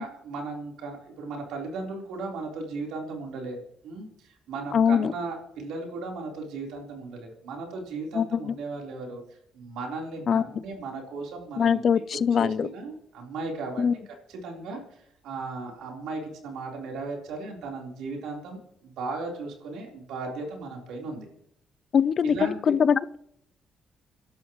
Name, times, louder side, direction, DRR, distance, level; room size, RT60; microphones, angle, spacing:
voice 1, 0.0-9.2 9.5-11.8 12.3-13.8 14.3-21.3 22.2-22.7, right 3 dB, 85° right, 0 dB, 4.0 m, -36 dB
voice 2, 4.7-5.1 8.1-8.5 10.3-10.4 11.6-12.7 13.8-13.9 21.9-23.2, left 7 dB, 55° left, 17 dB, 0.6 m, -22 dB
29.0 x 11.5 x 3.1 m, 0.73 s
cardioid pair, 90°, 0 cm